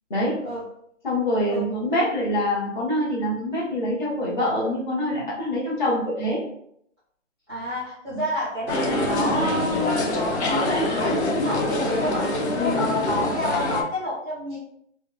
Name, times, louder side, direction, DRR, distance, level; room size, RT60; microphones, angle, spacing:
voice 1, 0.1-0.4 1.0-6.4 8.1-8.2 12.6-12.9, left 1 dB, 35° left, -6 dB, 1.2 m, -25 dB
voice 2, 7.5-12.3 12.7-14.6, left 1 dB, 5° left, -15 dB, 0.7 m, -29 dB
sound 1, 8.7-13.8, left 1 dB, 60° left, 0.6 m, -24 dB
3.2 x 2.1 x 2.2 m, 0.69 s
hypercardioid pair, 165°, 39 cm